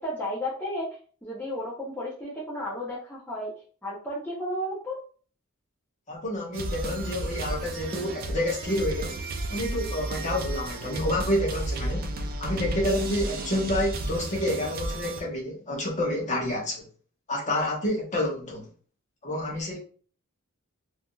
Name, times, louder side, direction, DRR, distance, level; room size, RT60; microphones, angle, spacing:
voice 1, 0.0-3.5 3.8-5.0, equal, 10° left, -7 dB, 0.7 m, -33 dB
voice 2, 6.1-9.2 9.5-12.1 12.4-16.8 17.3-18.7 19.2-19.8, left 1 dB, 35° left, -2 dB, 1.0 m, -29 dB
sound 1, 6.5-15.2, right 2 dB, 40° right, 0.4 m, -33 dB
3.4 x 2.6 x 2.2 m, 0.42 s
head